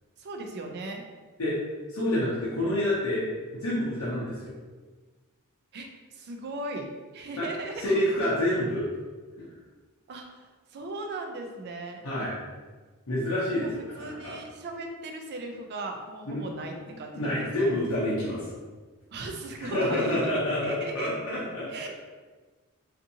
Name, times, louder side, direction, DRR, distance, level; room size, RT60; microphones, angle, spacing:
voice 1, 0.2-1.0 5.7-6.9 7.1-7.8 10.1-12.0 13.6-17.8 19.1-20.3 20.6-21.1 21.7-21.9, right 2 dB, 50° right, 3 dB, 0.4 m, -37 dB
voice 2, 1.9-3.3 3.6-4.5 7.4-7.5 7.7-8.9 12.0-12.3 13.1-14.4 16.3-16.4 17.1-18.5 19.6-21.9, left 1 dB, 85° left, -8 dB, 0.7 m, -28 dB
2.6 x 2.5 x 2.7 m, 1.3 s
head